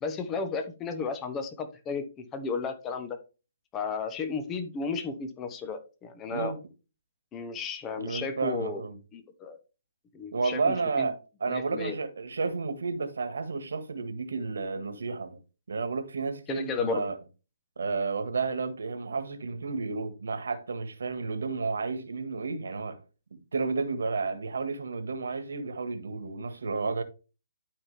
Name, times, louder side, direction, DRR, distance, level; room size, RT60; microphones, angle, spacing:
voice 1, 0.0-3.2 3.7-6.5 7.3-8.8 9.1-9.6 10.1-11.1 11.5-12.0 16.5-17.1, left 5 dB, 15° left, 0.9 m, -34 dB
voice 2, 6.3-6.6 8.0-9.0 10.3-15.4 15.7-17.2 17.8-23.0 23.3-27.0, right 4 dB, 85° right, 1.7 m, -31 dB
12.0 x 4.2 x 3.4 m
hypercardioid pair, 155°, 0 cm